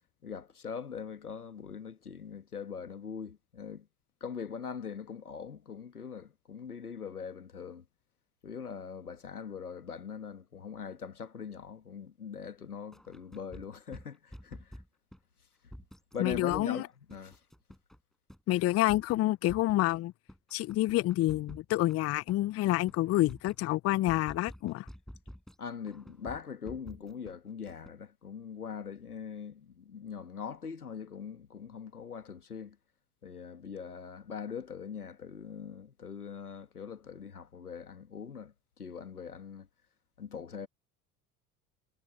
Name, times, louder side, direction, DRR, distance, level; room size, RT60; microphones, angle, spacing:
voice 1, 0.2-3.9 4.2-7.8 8.4-14.8 16.1-17.4 25.6-32.8 33.2-39.7 40.2-40.7, left 6 dB, 85° left, 1.7 m, -42 dB
sound 1, 12.9-15.2 15.7-16.7 17.1-18.0 18.3-18.4 18.7-20.0 20.3-22.4 22.7-23.0 23.3-25.6 25.9-27.3 27.7-27.9, equal, ahead, 7.0 m, -49 dB
voice 2, 16.2-16.9 18.5-20.1 20.5-24.9, left 16 dB, 35° left, 0.6 m, -28 dB
figure-of-eight pair, 65°, 44 cm